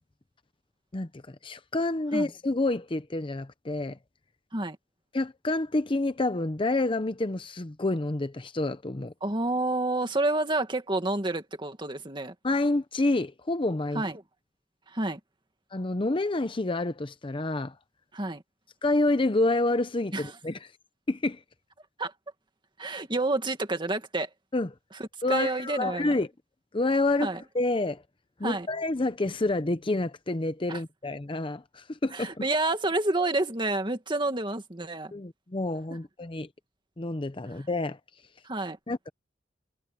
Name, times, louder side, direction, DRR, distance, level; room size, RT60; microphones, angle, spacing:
voice 1, 0.9-4.0 5.1-9.1 12.4-14.0 15.7-17.7 18.8-20.6 21.1-21.4 24.5-24.7 25.2-26.3 26.7-28.0 28.4-32.4 35.1-36.5 37.0-38.0 38.9-39.1, left 2 dB, 30° left, 0.7 m, -28 dB
voice 2, 9.2-12.3 13.9-14.2 14.9-15.2 18.1-18.4 20.1-20.3 22.0-22.1 22.8-24.3 25.3-26.2 27.2-27.4 28.4-28.7 30.7-30.8 32.1-35.1 38.4-38.8, right 2 dB, 25° right, 2.2 m, -29 dB
head